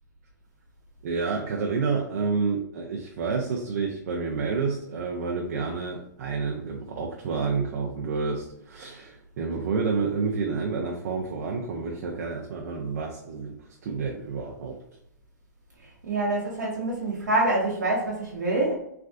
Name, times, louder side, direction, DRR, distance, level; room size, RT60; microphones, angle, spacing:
voice 1, 1.0-13.6 13.8-14.8, right 4 dB, 55° right, 0 dB, 0.5 m, -29 dB
voice 2, 16.0-18.8, right 2 dB, 75° right, -3 dB, 0.9 m, -26 dB
3.3 x 2.4 x 2.4 m, 0.75 s
hypercardioid pair, 110°, 10 cm